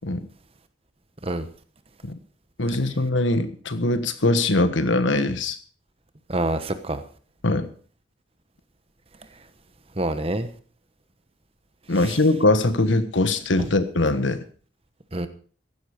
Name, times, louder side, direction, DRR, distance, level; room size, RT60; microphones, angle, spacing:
voice 1, 2.6-5.6 7.4-7.7 11.9-14.4, left 2 dB, 75° left, 11 dB, 1.4 m, -22 dB
voice 2, 6.3-7.0 10.0-10.5 15.1-15.3, right 1 dB, 30° right, 10 dB, 1.1 m, -26 dB
15.0 x 11.5 x 5.1 m, 0.43 s
head